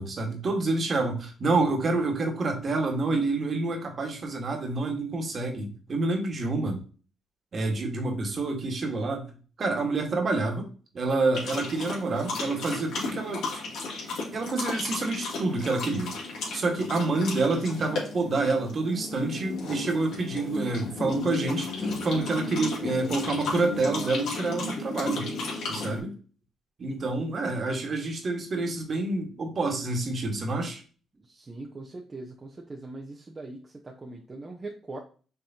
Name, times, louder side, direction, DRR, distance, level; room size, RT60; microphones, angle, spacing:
voice 1, 0.0-6.8 7.5-9.3 9.6-10.7 10.9-13.6 14.3-16.1 16.5-25.3 25.7-26.1 26.8-30.8, right 3 dB, 45° right, 3 dB, 1.5 m, -28 dB
sound 1, 11.3-26.0, left 3 dB, 75° left, 2.0 m, -34 dB
voice 2, 31.1-35.0, right 2 dB, 25° right, 0 dB, 0.7 m, -41 dB
5.7 x 3.3 x 2.8 m, 0.39 s
cardioid pair, 90°, 0 cm